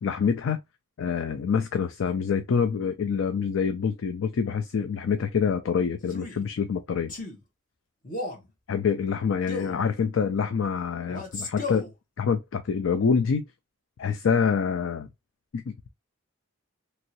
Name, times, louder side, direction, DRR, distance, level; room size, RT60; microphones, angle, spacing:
voice 1, 0.0-0.6 1.0-7.1 8.7-11.9 12.2-13.4 14.0-15.1 15.5-15.9, left 6 dB, 70° left, 0.4 m, -26 dB
Male speech man speaking, 6.0-6.4 7.1-7.4 8.0-8.5 9.5-9.8 11.1-11.9, left 3 dB, 40° left, 1.0 m, -34 dB
2.9 x 2.7 x 2.8 m
head